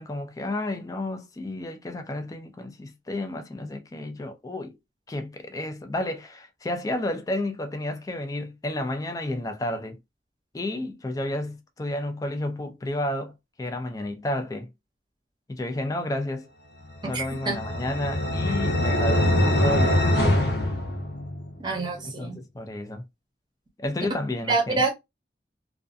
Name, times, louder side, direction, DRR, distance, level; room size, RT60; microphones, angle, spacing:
voice 1, 0.0-4.8 5.1-10.0 10.5-13.3 13.6-14.7 15.5-16.5 17.1-20.1 22.0-23.0 23.8-24.8, left 1 dB, 20° left, 0.3 m, -31 dB
sound 1, 17.0-21.6, left 1 dB, 70° left, 0.8 m, -23 dB
voice 2, 17.1-17.6 21.6-22.4 24.5-25.0, right 3 dB, 25° right, 0.7 m, -26 dB
2.4 x 2.2 x 2.4 m
head